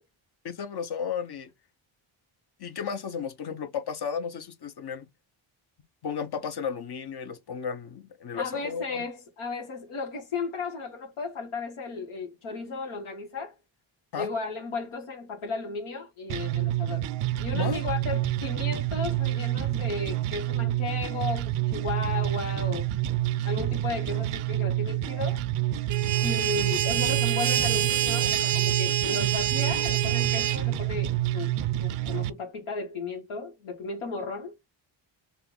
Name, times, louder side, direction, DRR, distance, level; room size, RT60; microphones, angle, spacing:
voice 1, 0.4-1.5 2.6-5.1 6.0-9.0 14.1-14.3 17.5-17.8, left 7 dB, 50° left, 0.9 m, -33 dB
voice 2, 8.4-13.5 14.2-17.0 17.4-22.9 23.4-25.4 26.2-31.5 31.8-34.5, left 4 dB, 80° left, 1.4 m, -35 dB
sound 1, 16.3-32.3, right 14 dB, 85° right, 0.6 m, -28 dB
sound 2, 25.9-30.6, right 10 dB, 40° right, 0.5 m, -27 dB
5.5 x 2.3 x 3.8 m
cardioid pair, 90°, 49 cm